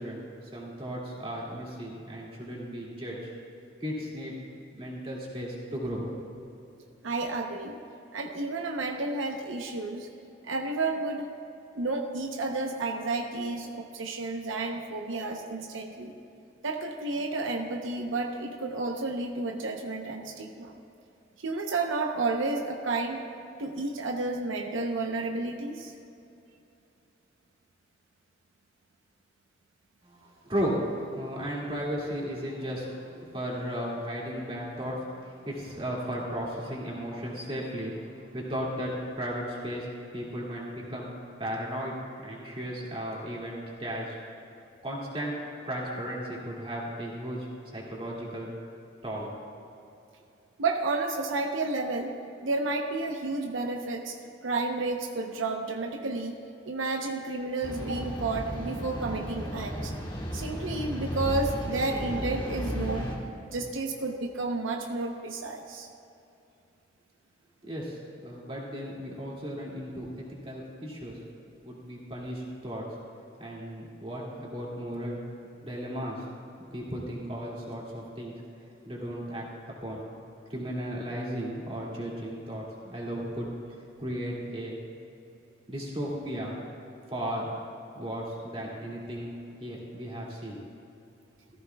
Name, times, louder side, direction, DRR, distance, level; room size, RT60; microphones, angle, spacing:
voice 1, 0.0-3.3 3.8-4.4 4.7-6.1 30.0-39.9 40.1-41.1 41.4-41.9 42.2-44.2 44.8-45.4 45.6-47.5 47.7-48.5 49.0-49.3 67.6-68.0 68.2-71.2 71.6-72.9 73.4-75.2 75.6-76.2 76.7-78.4 78.8-80.1 80.5-83.5 84.0-84.8 85.7-86.6 87.1-87.5 87.9-89.3 89.6-90.6, equal, 25° right, -4 dB, 2.3 m, -35 dB
voice 2, 7.0-7.8 8.1-10.1 10.4-11.3 11.7-16.1 16.6-20.8 21.4-23.2 23.6-25.9 45.9-46.0 50.6-52.1 52.4-54.2 54.4-56.4 56.7-59.9 60.3-63.1 63.5-65.9, right 3 dB, 85° right, 3 dB, 0.8 m, -31 dB
sound 1, 57.6-63.2, equal, 25° left, 1.4 m, -34 dB
17.0 x 14.5 x 2.3 m, 2.8 s
head